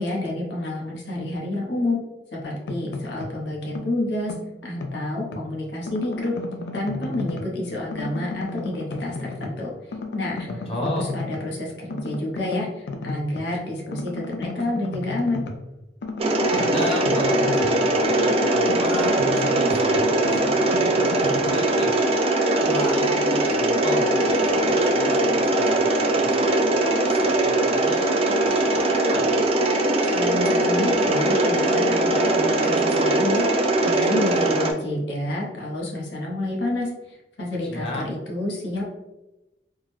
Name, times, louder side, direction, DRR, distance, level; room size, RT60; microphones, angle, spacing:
voice 1, 0.0-2.0 2.3-4.3 4.6-6.3 6.7-10.6 11.0-15.4 30.1-38.8, left 1 dB, 85° left, -3 dB, 0.9 m, -29 dB
sound 1, 2.4-3.4 3.7-5.5 5.9-7.6 7.9-9.7 9.9-11.5 11.9-13.5 13.9-17.9 18.2-21.5, left 2 dB, 70° left, 0.4 m, -34 dB
voice 2, 10.5-11.0 16.5-22.0 22.6-26.5 26.8-29.3 37.6-38.1, left 1 dB, 35° left, -3 dB, 0.7 m, -33 dB
Mechanisms, 16.2-34.7, right 2 dB, 35° right, 0.4 m, -21 dB
3.4 x 2.1 x 3.2 m, 0.98 s
head